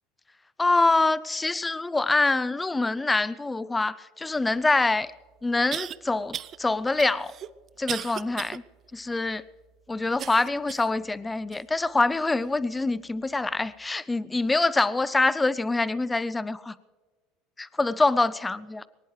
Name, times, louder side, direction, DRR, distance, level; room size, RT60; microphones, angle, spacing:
voice 1, 0.6-5.1 5.4-7.3 7.8-8.6 8.9-9.4 9.9-16.8 17.6-18.8, left 3 dB, 10° left, 0.5 m, -25 dB
sound 1, 4.7-4.8 5.7-6.0 6.3-6.6 7.0-8.6 9.1-9.2 10.2-10.9 11.5-11.6 12.4-12.5, right 10 dB, 40° right, 0.4 m, -35 dB
22.5 x 19.0 x 3.3 m
supercardioid pair, 115°, 0 cm